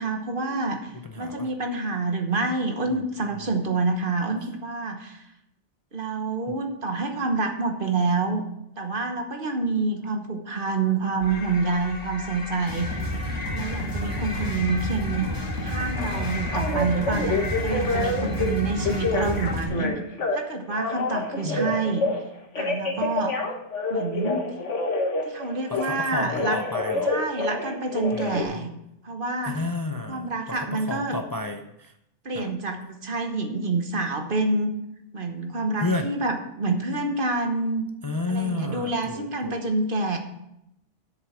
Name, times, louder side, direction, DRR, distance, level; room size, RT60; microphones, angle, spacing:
voice 1, 0.0-5.2 5.9-8.4 8.8-12.9 13.5-15.3 15.6-19.9 20.3-22.1 22.6-23.4 23.9-24.4 25.2-26.6 27.0-28.7 29.0-29.6 30.1-31.2 32.2-34.7 35.1-37.9 38.3-40.2, right 3 dB, 50° right, 5 dB, 1.3 m, -27 dB
voice 2, 1.0-1.5 2.9-3.0 3.4-3.5 6.5-6.6 21.4-21.7 23.0-23.1 25.7-27.1 28.1-28.7 29.4-31.9 32.3-32.5 35.8-36.1 38.0-39.6, left 3 dB, 25° left, 5 dB, 0.5 m, -32 dB
sound 1, 11.2-19.8, left 3 dB, 40° left, 1.2 m, -37 dB
sound 2, 12.6-19.6, equal, 20° right, 1.3 m, -31 dB
Telephone, 16.0-18.5 18.8-20.4 20.7-22.2 22.6-26.0 26.3-28.4, left 2 dB, 80° left, 1.7 m, -27 dB
7.8 x 6.6 x 7.3 m, 0.83 s
omnidirectional pair, 1.2 m